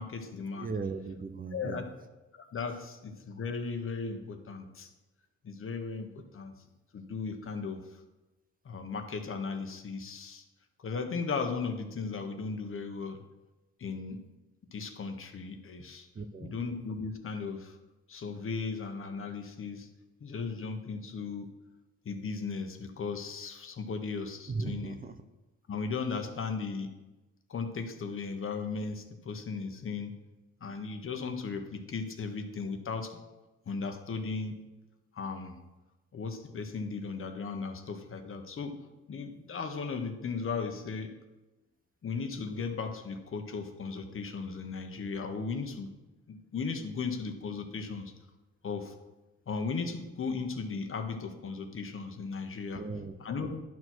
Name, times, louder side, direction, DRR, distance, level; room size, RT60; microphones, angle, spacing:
voice 1, 0.0-0.7 1.5-1.8 2.3-4.9 5.4-6.5 6.9-7.8 8.6-10.4 10.8-13.2 13.8-14.2 14.7-16.1 16.4-17.8 18.1-19.9 20.2-21.5 22.0-25.0 25.7-27.0 27.5-30.1 30.6-33.2 33.7-34.6 35.1-35.6 36.1-38.8 39.1-41.2 42.0-45.9 46.3-48.1 48.6-48.9 49.5-52.8 53.2-53.6, left 4 dB, 45° left, 6 dB, 1.3 m, -36 dB
voice 2, 0.5-1.8 15.8-15.9 16.1-16.6 24.5-25.2 52.7-53.2, right 4 dB, 30° right, 9 dB, 0.7 m, -37 dB
11.0 x 4.6 x 6.2 m, 1.1 s
cardioid pair, 90°, 30 cm